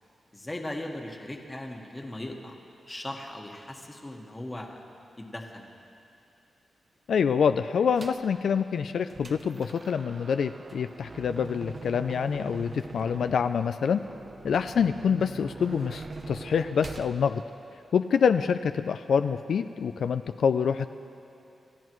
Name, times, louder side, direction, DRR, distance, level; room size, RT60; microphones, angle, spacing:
voice 1, 0.3-2.5 2.9-4.8 5.2-5.7 14.7-14.9, left 1 dB, 15° left, 1 dB, 1.5 m, -38 dB
voice 2, 7.1-14.0 14.4-17.4 17.9-20.9, left 6 dB, 75° left, 9 dB, 0.3 m, -26 dB
sound 1, 8.0-8.3 8.8-17.1, right 3 dB, 35° right, 0.7 m, -43 dB
29.0 x 14.0 x 3.1 m, 2.7 s
wide cardioid pair, 115°, 0 cm